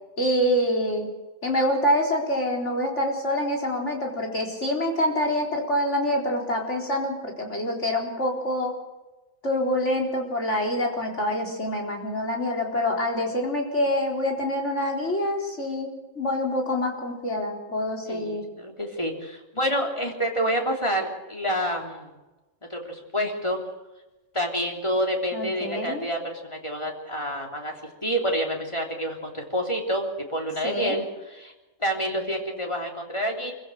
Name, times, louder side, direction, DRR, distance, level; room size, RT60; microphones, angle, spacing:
voice 1, 0.2-1.1 1.4-8.7 9.4-18.4 25.3-26.0 30.6-31.0, left 1 dB, 65° left, 0 dB, 4.5 m, -26 dB
voice 2, 18.1-22.1 22.7-23.6 24.3-31.1 31.3-31.5 31.8-33.5, equal, 20° left, 0 dB, 3.4 m, -28 dB
26.0 x 15.5 x 6.5 m, 1.1 s
omnidirectional pair, 1.3 m